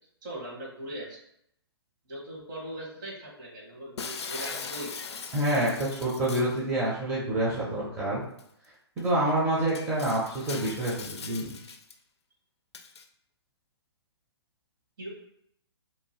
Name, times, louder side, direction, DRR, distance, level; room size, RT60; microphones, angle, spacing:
voice 1, 0.2-1.2 2.1-4.9 15.0-15.1, right 1 dB, 50° right, -4 dB, 1.3 m, -40 dB
Shatter, 4.0-6.6 8.4-8.5 9.0-9.1 9.7-11.9 12.7-13.0, left 5 dB, 75° left, 0.4 m, -40 dB
voice 2, 5.3-8.2 9.0-11.5, right 1 dB, 15° right, -8 dB, 0.7 m, -27 dB
2.8 x 2.1 x 3.1 m, 0.74 s
figure-of-eight pair, 130°, 14 cm